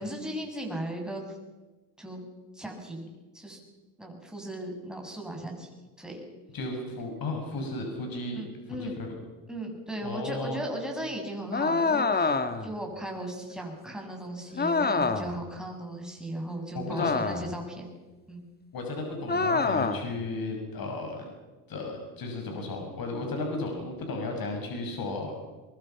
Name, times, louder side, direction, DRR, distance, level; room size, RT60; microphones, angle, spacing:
voice 1, 0.0-1.4 2.0-2.2 2.5-3.1 3.3-3.6 4.0-5.7 6.0-6.2 8.3-9.0 9.5-17.9 18.3-18.4, right 1 dB, ahead, 1 dB, 7.3 m, -37 dB
voice 2, 6.5-8.4 8.8-9.1 10.0-10.6 16.7-17.2 18.7-21.2 21.7-25.3, left 2 dB, 45° left, 2 dB, 6.7 m, -34 dB
sound 1, 11.5-12.7 14.6-15.4 16.9-17.6 19.3-20.1, left 4 dB, 20° left, 1.8 m, -26 dB
23.0 x 23.0 x 5.9 m, 1.2 s
supercardioid pair, 85°, 48 cm